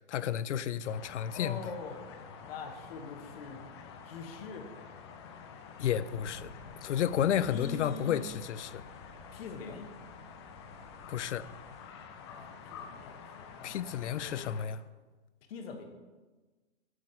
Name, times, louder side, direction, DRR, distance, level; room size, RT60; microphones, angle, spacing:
voice 1, 0.1-1.6 5.8-6.5 6.8-8.8 11.1-11.5 13.6-14.8, left 9 dB, 80° left, 0.5 m, -31 dB
sound 1, 0.9-14.7, left 6 dB, 25° left, 0.4 m, -49 dB
voice 2, 1.3-2.0 2.4-3.6 4.0-4.7 7.5-8.3 9.3-9.9 12.2-14.5 15.5-15.8, left 5 dB, 55° left, 1.3 m, -43 dB
sound 2, 6.1-11.9, left 1 dB, 10° left, 1.3 m, -55 dB
7.5 x 4.1 x 6.4 m
hypercardioid pair, 140°, 35 cm